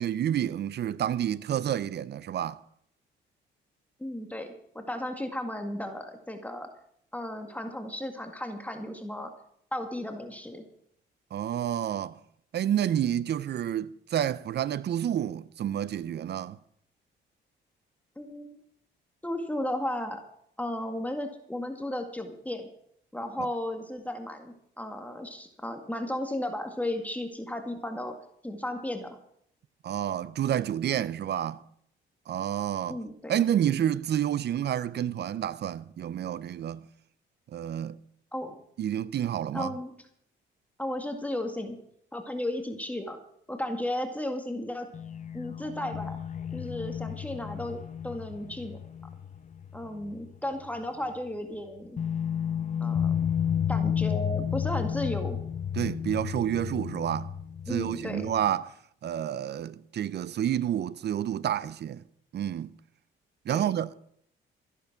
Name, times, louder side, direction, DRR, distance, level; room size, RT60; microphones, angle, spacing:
voice 1, 0.0-2.6 11.3-12.2 12.5-16.6 23.4-23.5 29.8-31.6 32.3-33.0 33.3-36.9 37.5-38.0 38.8-39.7 55.8-57.3 57.7-58.7 59.0-62.0 62.3-62.7 63.4-63.9, right 10 dB, 60° right, 0.7 m, -29 dB
voice 2, 4.0-6.7 7.1-9.3 9.7-10.7 18.2-18.6 19.2-20.2 20.6-22.7 23.1-28.2 28.4-29.2 32.9-33.3 38.3-38.6 39.5-40.0 40.8-41.8 42.1-43.2 43.5-44.9 45.3-46.2 46.5-48.8 49.7-52.0 52.8-53.3 53.7-55.4 57.7-58.3 63.5-63.7, left 1 dB, 5° left, 1.9 m, -34 dB
sound 1, 44.9-50.4 50.6-50.8 52.0-58.5, left 8 dB, 40° left, 0.9 m, -32 dB
14.0 x 11.0 x 5.9 m
cardioid pair, 90°, 20 cm